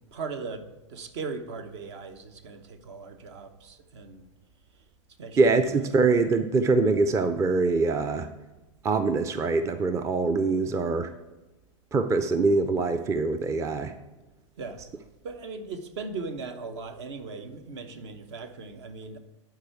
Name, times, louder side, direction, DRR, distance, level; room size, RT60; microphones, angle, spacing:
voice 1, 0.1-4.3 5.2-5.4 14.6-14.8 15.2-19.2, right 4 dB, 60° right, 8 dB, 1.0 m, -38 dB
voice 2, 5.4-8.3 8.8-11.1 11.9-13.9, right 3 dB, 15° right, 10 dB, 0.5 m, -24 dB
11.5 x 4.7 x 4.6 m, 1.1 s
hypercardioid pair, 95°, 17 cm